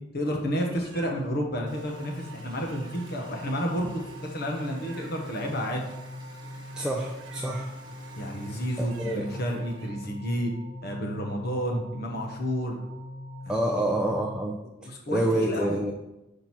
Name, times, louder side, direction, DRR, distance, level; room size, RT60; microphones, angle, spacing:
voice 1, 0.1-4.0 4.3-5.8 8.2-10.5 10.8-12.8 13.5-13.6 14.8-15.8, equal, 55° left, 1 dB, 1.1 m, -31 dB
Meow, 0.6-1.4 2.4-3.7 4.6-5.7 6.6-9.9, right 4 dB, 85° right, 0.9 m, -50 dB
Water tap faucet, 1.7-10.2, right 1 dB, 20° right, 1.2 m, -52 dB
sound 1, 1.7-14.4, left 1 dB, 50° right, 1.3 m, -42 dB
voice 2, 6.8-7.7 8.8-9.3 11.7-11.8 13.5-14.6 15.1-15.9, right 1 dB, 5° right, -1 dB, 0.5 m, -27 dB
5.1 x 4.4 x 6.0 m, 0.96 s
head